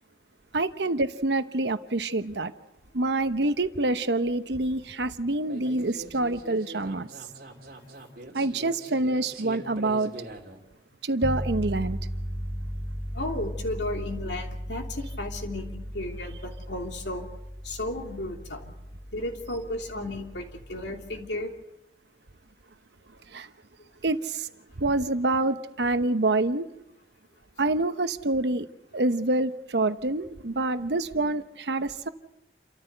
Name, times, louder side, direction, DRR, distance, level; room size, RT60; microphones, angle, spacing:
voice 1, 0.5-2.5 2.9-7.1 8.3-10.1 11.0-12.0 23.3-23.5 24.0-24.5 24.8-26.7 27.6-28.7 28.9-32.1, right 2 dB, 80° right, 10 dB, 1.0 m, -26 dB
sound 1, 5.5-10.6, right 1 dB, 55° right, 3.1 m, -42 dB
sound 2, 11.2-21.3, equal, 5° right, 0.7 m, -36 dB
voice 2, 13.1-17.3 17.6-18.7 19.1-21.5, left 1 dB, 85° left, 3 dB, 3.0 m, -34 dB
29.0 x 14.0 x 8.0 m, 0.91 s
head